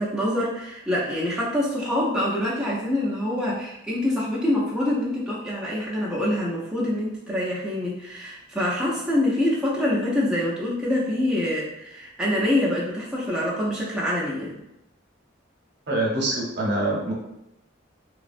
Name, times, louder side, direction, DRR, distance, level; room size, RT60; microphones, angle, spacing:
voice 1, 0.0-14.6, left 1 dB, 5° right, -7 dB, 0.5 m, -25 dB
voice 2, 15.9-17.1, right 2 dB, 55° right, -3 dB, 0.7 m, -25 dB
3.2 x 2.0 x 2.5 m, 0.86 s
head